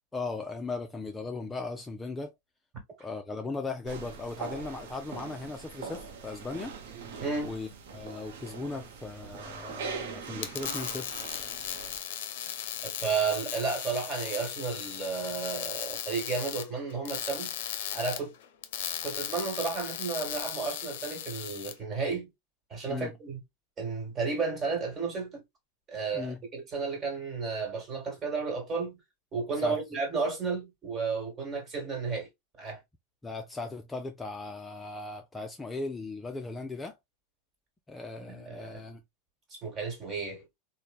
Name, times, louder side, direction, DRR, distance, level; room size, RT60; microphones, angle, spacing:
voice 1, 0.1-2.3 3.0-6.8 7.4-11.2 22.9-23.1 26.1-26.4 29.6-29.8 33.2-36.9 37.9-39.0, left 3 dB, 10° left, 0.4 m, -37 dB
sound 1, 3.9-12.0, right 5 dB, 80° right, 0.7 m, -42 dB
voice 2, 7.2-7.5 12.8-17.5 17.9-18.3 19.0-22.3 22.7-23.4 23.8-25.4 25.9-29.0 29.3-32.3 32.6-32.8 38.2-38.8 39.5-40.5, right 4 dB, 30° right, 1.5 m, -33 dB
sound 2, 10.3-21.7, left 10 dB, 75° left, 0.5 m, -37 dB
3.1 x 2.1 x 2.3 m
supercardioid pair, 120°, 0 cm